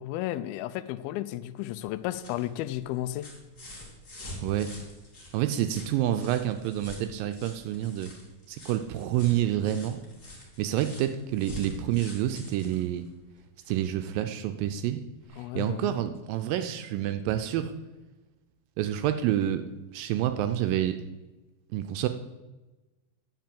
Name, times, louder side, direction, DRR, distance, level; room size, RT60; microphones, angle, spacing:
voice 1, 0.0-3.3 15.4-16.0, left 14 dB, 85° left, 14 dB, 2.4 m, -33 dB
sound 1, 1.9-13.9 15.2-15.3, equal, 25° left, 2.1 m, -46 dB
voice 2, 5.3-8.1 8.5-10.0 10.6-13.1 13.7-15.0 15.3-17.7 18.8-19.7 19.9-21.0 21.7-22.1, right 12 dB, 80° right, 9 dB, 2.1 m, -28 dB
10.5 x 5.3 x 7.5 m, 1.1 s
omnidirectional pair, 4.3 m